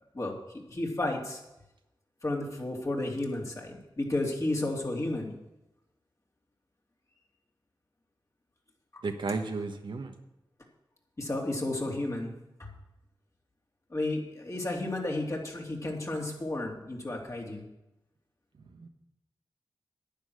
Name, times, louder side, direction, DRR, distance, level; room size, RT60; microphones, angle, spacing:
voice 1, 0.1-1.4 2.2-5.3 8.9-9.0 11.2-12.7 13.9-17.6, left 2 dB, 40° left, 0 dB, 2.9 m, -32 dB
voice 2, 9.0-10.2 18.6-18.9, right 3 dB, 70° right, 5 dB, 1.2 m, -34 dB
10.5 x 9.1 x 6.5 m, 0.92 s
cardioid pair, 50°, 8 cm